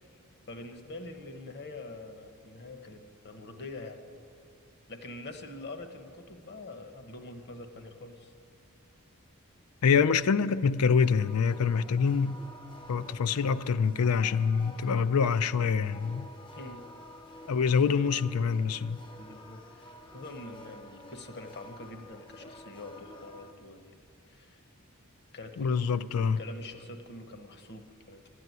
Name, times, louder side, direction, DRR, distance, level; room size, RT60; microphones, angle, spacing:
voice 1, 0.5-4.0 4.9-8.3 16.6-16.8 17.7-18.0 19.2-24.0 24.3-24.6 25.3-25.9 26.1-28.2, left 2 dB, 50° left, 1.1 m, -45 dB
voice 2, 9.8-12.4 12.9-16.3 17.5-19.0 25.6-26.4, left 6 dB, 75° left, 0.4 m, -25 dB
sound 1, 10.9-23.5, left 1 dB, 20° left, 0.6 m, -50 dB
13.5 x 9.7 x 9.3 m
head